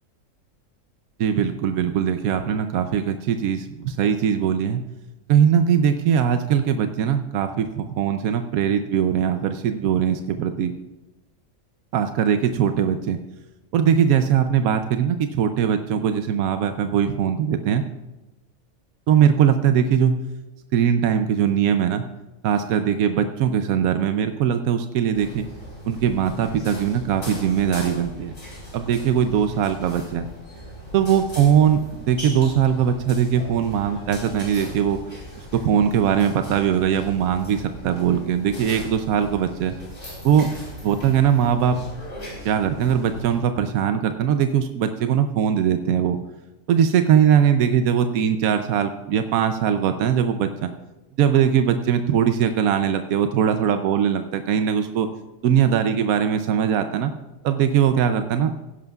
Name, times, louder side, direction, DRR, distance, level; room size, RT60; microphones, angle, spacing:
voice 1, 1.2-4.8 5.3-10.7 11.9-13.2 13.7-17.8 19.1-20.2 20.7-22.0 22.4-25.5 25.8-28.3 28.7-30.3 30.9-31.8 32.1-35.0 35.5-39.8 40.2-40.5 40.8-41.8 42.4-46.2 46.7-50.7 51.2-55.1 55.4-57.1 57.4-58.5, right 8 dB, 85° right, 8 dB, 1.1 m, -20 dB
sound 1, 25.1-43.4, equal, 40° left, 3.7 m, -38 dB
16.5 x 11.0 x 2.3 m, 1.1 s
omnidirectional pair, 1.4 m